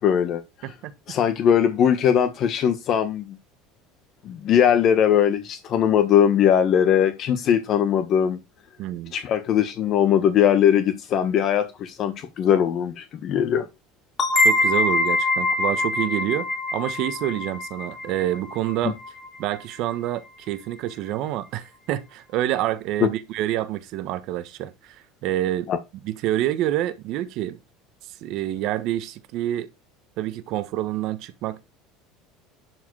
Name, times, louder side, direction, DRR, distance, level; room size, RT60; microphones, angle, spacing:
voice 1, 0.0-0.4 1.1-3.3 4.2-8.4 9.1-13.7 25.7-25.8, left 9 dB, 45° left, 1.4 m, -20 dB
voice 2, 8.8-9.1 14.4-19.0 19.4-25.7 26.0-27.6 28.2-29.7 30.2-31.6, right 13 dB, 60° right, 1.4 m, -27 dB
sound 1, 14.2-19.6, left 2 dB, 30° left, 2.4 m, -24 dB
11.5 x 4.8 x 4.9 m
supercardioid pair, 120°, 0 cm